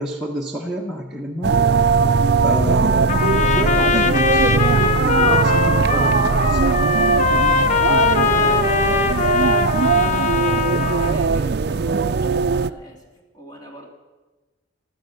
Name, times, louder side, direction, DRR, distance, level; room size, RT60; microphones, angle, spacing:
voice 1, 0.0-1.6 2.4-3.2 3.5-4.5 4.8-6.9, equal, ahead, -4 dB, 1.1 m, -29 dB
sound 1, 1.4-12.7, right 5 dB, 55° right, 0.4 m, -19 dB
voice 2, 2.9-3.9 7.5-7.9 8.3-13.1 13.3-13.9, right 1 dB, 20° left, 0 dB, 3.1 m, -41 dB
Trumpet, 3.1-11.2, left 5 dB, 40° left, 0.7 m, -21 dB
15.5 x 12.5 x 6.7 m, 1.2 s
head